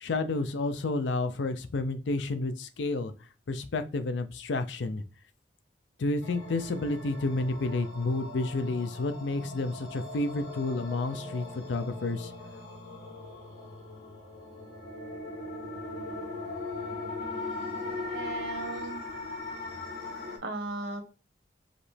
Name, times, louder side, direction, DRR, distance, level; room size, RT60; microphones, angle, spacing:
voice 1, 0.0-3.1 3.5-5.0 6.0-12.3, left 2 dB, 80° left, 10 dB, 0.5 m, -30 dB
sound 1, 6.2-20.4, left 2 dB, 60° left, 2.0 m, -39 dB
voice 2, 18.0-19.0 20.4-21.0, right 2 dB, 70° right, 5 dB, 1.0 m, -36 dB
5.0 x 3.0 x 3.2 m, 0.34 s
head